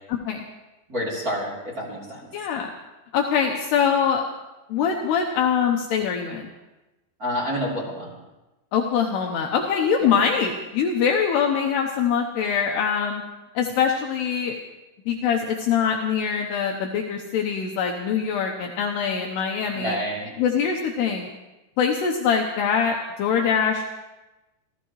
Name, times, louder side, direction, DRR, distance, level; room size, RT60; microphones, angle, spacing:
voice 1, 0.1-0.5 2.3-2.7 3.1-4.2 4.7-6.5 8.7-13.2 13.6-14.6 15.1-20.0 20.4-21.3 21.8-23.8, left 7 dB, 75° left, 1 dB, 2.7 m, -23 dB
voice 2, 0.9-2.3 7.2-8.1 10.0-10.1 19.7-20.3, equal, 20° right, -4 dB, 3.0 m, -28 dB
28.0 x 15.0 x 3.2 m, 1.1 s
omnidirectional pair, 5.5 m